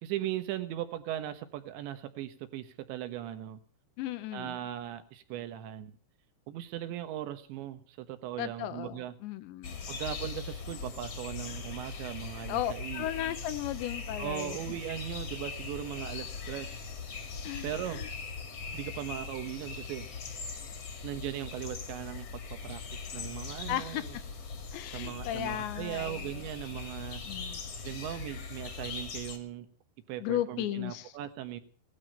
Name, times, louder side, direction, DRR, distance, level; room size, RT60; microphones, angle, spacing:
voice 1, 0.0-3.6 4.3-5.9 6.5-9.1 9.9-13.1 14.2-16.7 17.6-18.0 18.7-20.1 21.0-22.3 22.6-24.2 24.9-27.2 27.8-29.7 30.1-31.6, right 12 dB, 80° right, 9 dB, 3.5 m, -38 dB
voice 2, 4.0-4.6 8.4-9.9 12.5-14.6 17.4-18.1 23.7-24.2 24.7-26.4 27.3-27.7 30.2-31.1, left 13 dB, 80° left, 12 dB, 3.2 m, -35 dB
sound 1, 9.6-29.4, left 4 dB, 45° left, 2.5 m, -40 dB
18.0 x 12.5 x 5.4 m, 0.43 s
omnidirectional pair, 5.2 m